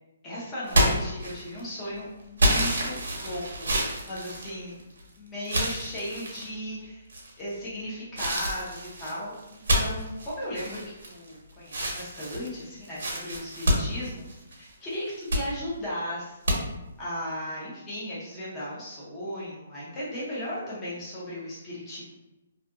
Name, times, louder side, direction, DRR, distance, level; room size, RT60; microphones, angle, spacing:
voice 1, 0.2-3.7 4.0-4.8 5.2-7.1 7.4-14.2 14.5-16.7 17.0-22.0, equal, 15° left, -8 dB, 0.6 m, -36 dB
sound 1, 0.7-1.7 2.4-5.0 5.4-6.5 7.1-7.6 8.2-11.3 11.7-14.7 15.1-15.5 16.5-16.6, equal, 80° right, 0.7 m, -27 dB
2.6 x 2.5 x 2.4 m, 0.99 s
hypercardioid pair, 175°, 0 cm